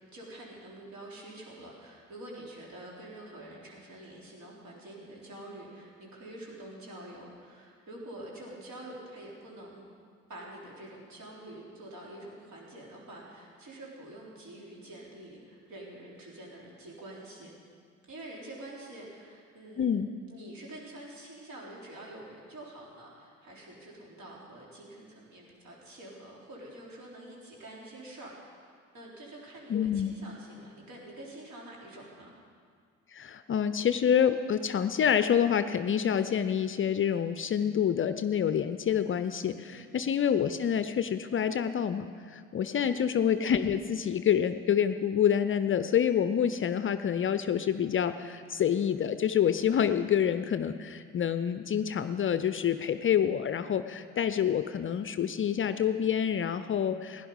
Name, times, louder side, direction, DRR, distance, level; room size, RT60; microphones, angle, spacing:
voice 1, 0.1-9.8 10.3-17.5 18.0-20.0 20.3-32.3 39.7-39.8 42.7-43.0, right 1 dB, 50° right, -3 dB, 3.7 m, -47 dB
voice 2, 19.8-20.1 29.7-30.1 33.1-57.3, left 8 dB, 35° left, 11 dB, 0.6 m, -27 dB
16.5 x 10.5 x 5.5 m, 2.1 s
figure-of-eight pair, 45°, 36 cm